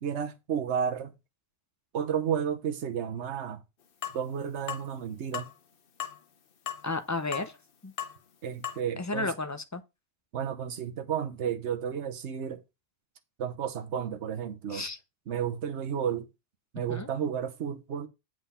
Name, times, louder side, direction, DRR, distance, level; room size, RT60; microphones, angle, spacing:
voice 1, 0.0-1.1 1.9-3.6 4.1-5.5 8.4-9.3 10.3-12.6 13.4-14.9 15.3-16.3 16.7-18.1, right 8 dB, 70° right, 1.2 m, -32 dB
sound 1, 4.0-4.2 4.7-4.9 5.3-5.5 6.0-6.2 6.7-6.8 7.3-7.5 8.0-8.2 8.6-8.8, left 9 dB, 50° left, 0.9 m, -36 dB
voice 2, 6.8-7.5 7.8-7.9 9.0-9.8 14.7-15.0 16.9-17.1, left 3 dB, 20° left, 0.6 m, -32 dB
7.9 x 4.7 x 5.6 m
omnidirectional pair, 1.3 m